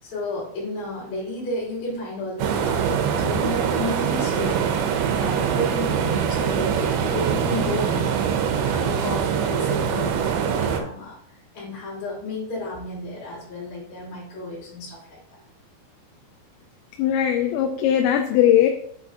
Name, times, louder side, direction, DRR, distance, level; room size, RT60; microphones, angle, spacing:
voice 1, 0.0-4.6 5.2-8.2 8.6-11.2 11.5-15.4, left 1 dB, 45° left, -6 dB, 4.3 m, -32 dB
sound 1, 2.4-10.8, right 7 dB, 80° right, 2.9 m, -23 dB
voice 2, 17.0-18.7, left 10 dB, 85° left, 4 dB, 2.9 m, -19 dB
7.5 x 6.8 x 2.8 m, 0.66 s
omnidirectional pair, 5.1 m